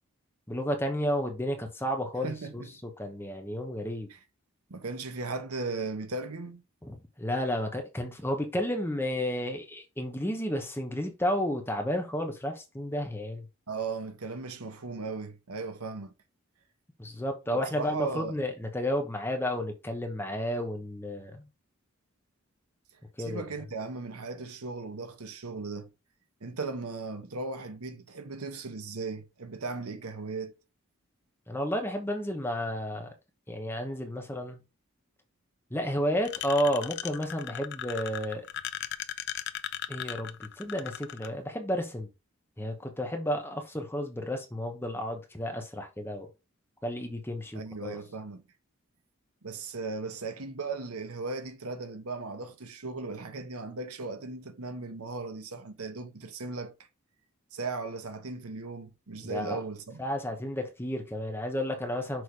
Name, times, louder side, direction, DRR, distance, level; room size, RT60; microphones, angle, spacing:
voice 1, 0.5-4.1 6.8-13.4 17.0-21.4 23.2-23.4 31.5-33.1 33.5-34.6 35.7-38.5 39.9-42.1 42.6-46.3 46.8-48.0 59.2-59.6 60.0-62.2, equal, 10° left, 1.0 m, -32 dB
voice 2, 2.2-2.7 4.1-4.2 4.7-6.6 13.7-16.1 17.5-18.4 23.2-25.9 26.4-30.5 47.5-48.4 49.4-56.7 57.5-60.0, right 3 dB, 85° right, 1.0 m, -37 dB
sound 1, 36.2-41.3, left 11 dB, 50° left, 0.4 m, -37 dB
6.3 x 3.4 x 4.7 m
head